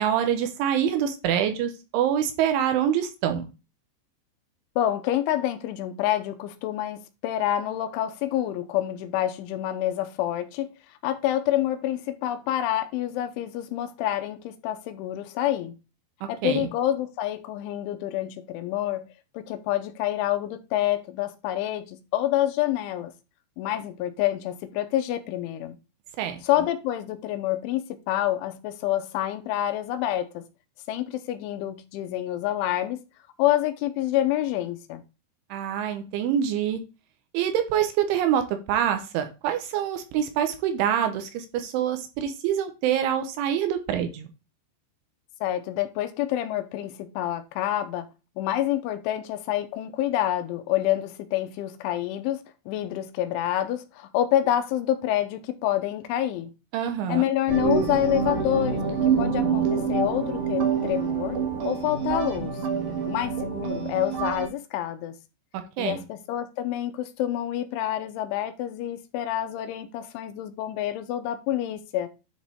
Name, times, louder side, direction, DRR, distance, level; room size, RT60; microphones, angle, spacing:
voice 1, 0.0-3.5 16.2-16.7 26.2-26.4 35.5-36.8 37.3-44.3 56.7-57.2 65.5-66.0, right 9 dB, 80° right, 3.5 m, -26 dB
voice 2, 4.8-10.7 11.0-15.8 16.3-19.1 19.3-23.1 23.6-25.8 26.4-30.4 30.9-33.0 33.4-35.0 45.4-48.1 48.4-56.5 57.1-61.4 61.6-62.5 63.1-65.2 65.8-72.1, left 12 dB, 85° left, 3.3 m, -27 dB
sound 1, 57.5-64.5, right 6 dB, 65° right, 2.6 m, -26 dB
10.0 x 5.1 x 3.6 m
omnidirectional pair, 5.5 m